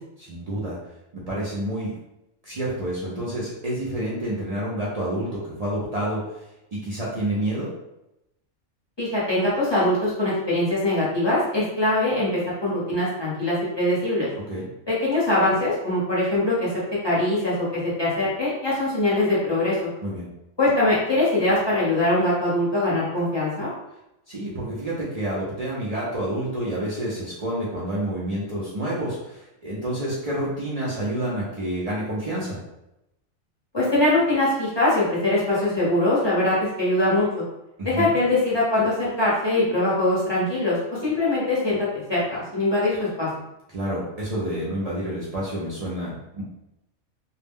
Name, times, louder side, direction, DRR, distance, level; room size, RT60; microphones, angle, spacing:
voice 1, 0.2-0.8 1.1-1.9 2.4-7.7 14.5-14.6 20.0-20.3 24.3-32.6 37.8-38.1 43.7-46.4, right 1 dB, 50° right, -7 dB, 0.4 m, -29 dB
voice 2, 9.0-14.3 14.9-16.7 17.0-19.9 20.6-23.7 33.7-37.3 37.8-40.8 41.0-43.3, left 1 dB, 25° left, -9 dB, 0.8 m, -22 dB
2.3 x 2.0 x 3.4 m, 0.88 s
omnidirectional pair, 1.3 m